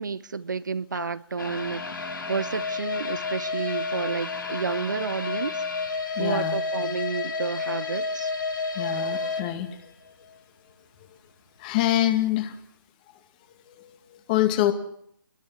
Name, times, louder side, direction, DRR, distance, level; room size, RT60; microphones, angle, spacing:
voice 1, 0.0-5.6 6.2-8.3, right 5 dB, 55° right, 0.9 m, -31 dB
sound 1, 1.4-10.4 10.7-10.8 11.3-11.4, left 4 dB, 65° left, 5.7 m, -31 dB
voice 2, 6.2-6.5 8.8-9.7 11.6-12.5 13.8-14.7, left 13 dB, 25° left, 2.2 m, -25 dB
25.5 x 21.0 x 5.9 m
figure-of-eight pair, 140°, 12 cm